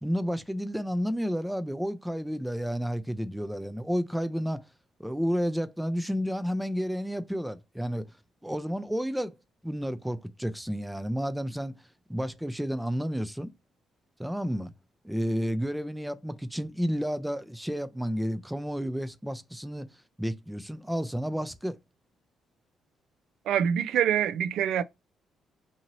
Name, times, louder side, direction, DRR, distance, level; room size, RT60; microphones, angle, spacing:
voice 1, 0.0-4.6 5.0-8.1 8.4-9.3 9.6-11.8 12.1-13.5 14.2-14.7 15.0-19.9 20.2-21.8, equal, 5° right, 0.4 m, -31 dB
voice 2, 23.5-24.8, right 9 dB, 80° right, 0.3 m, -25 dB
2.7 x 2.7 x 2.9 m
cardioid pair, 90°, 0 cm